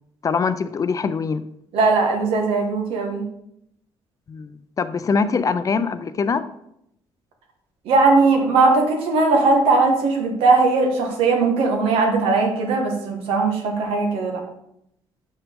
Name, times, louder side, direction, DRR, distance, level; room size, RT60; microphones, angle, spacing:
voice 1, 0.2-1.4 4.3-6.5, left 5 dB, 40° left, 12 dB, 0.5 m, -23 dB
voice 2, 1.7-3.2 7.8-14.4, right 3 dB, 85° right, 2 dB, 1.5 m, -19 dB
6.5 x 5.9 x 3.6 m, 0.77 s
cardioid pair, 85°, 9 cm